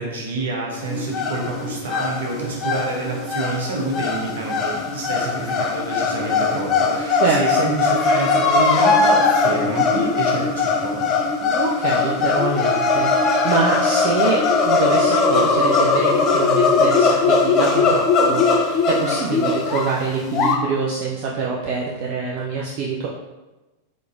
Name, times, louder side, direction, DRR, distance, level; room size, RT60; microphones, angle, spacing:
voice 1, 0.0-11.2, right 2 dB, 60° right, -1 dB, 1.0 m, -28 dB
sound 1, 0.8-20.6, left 4 dB, 30° left, 0.5 m, -20 dB
voice 2, 7.2-7.7 11.4-23.1, right 4 dB, 45° right, -3 dB, 0.5 m, -25 dB
4.2 x 3.8 x 2.5 m, 1.1 s
figure-of-eight pair, 90°, 0 cm